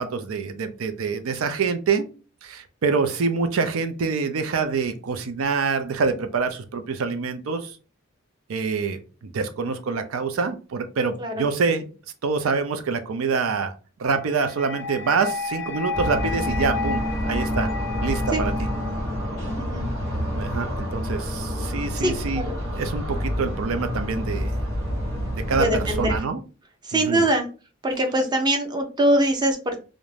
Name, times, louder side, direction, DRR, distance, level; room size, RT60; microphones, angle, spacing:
voice 1, 0.0-2.1 2.4-7.8 8.5-11.9 12.2-13.7 14.0-17.7 18.0-18.5 20.3-22.5 22.7-24.5 25.3-26.4 26.9-27.2, right 4 dB, 80° right, 8 dB, 0.5 m, -26 dB
sound 1, 14.3-19.3, left 4 dB, 60° left, 0.4 m, -32 dB
sound 2, 15.9-26.2, equal, 65° right, 1.1 m, -28 dB
voice 2, 19.6-19.9 22.0-22.6 25.5-26.2 26.8-27.5 27.8-29.8, right 1 dB, 20° right, 4 dB, 0.5 m, -23 dB
2.5 x 2.1 x 3.1 m, 0.34 s
head